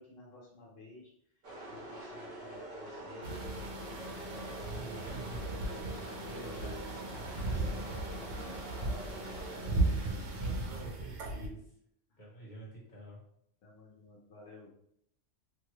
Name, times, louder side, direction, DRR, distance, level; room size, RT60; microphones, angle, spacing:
voice 1, 0.0-5.2 5.5-7.0 7.5-10.4 10.7-11.1 12.1-12.2 13.6-14.7, left 2 dB, 85° left, -5 dB, 1.2 m, -53 dB
sound 1, 1.4-10.1, right 1 dB, 50° right, 1.1 m, -45 dB
sound 2, 3.2-11.5, right 2 dB, 85° right, 1.0 m, -36 dB
voice 2, 4.7-5.4 6.3-6.8 10.4-11.8 12.2-13.2, right 2 dB, 40° left, -5 dB, 1.3 m, -48 dB
3.0 x 2.3 x 3.1 m, 0.71 s
omnidirectional pair, 1.2 m